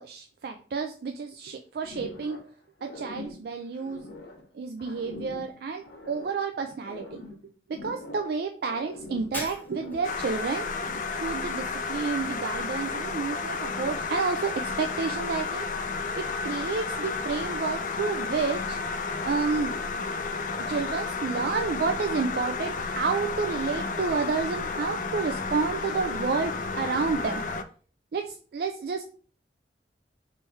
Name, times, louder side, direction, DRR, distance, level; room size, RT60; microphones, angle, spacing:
voice 1, 0.0-2.4 2.8-4.0 4.5-7.2 7.7-10.7 11.2-15.7 16.2-18.8 19.3-19.8 20.6-27.4 28.1-29.0, right 4 dB, 60° right, 5 dB, 0.3 m, -30 dB
sound 1, 1.8-2.5 2.8-4.5 4.8-6.5 6.8-8.4 8.6-10.2 10.5-11.2, left 2 dB, 75° left, 1.1 m, -43 dB
Shatter, 9.3-10.1, left 1 dB, 10° left, 0.8 m, -37 dB
sound 2, 10.0-27.6, left 4 dB, 45° left, 0.4 m, -32 dB
3.3 x 3.1 x 4.5 m, 0.43 s
head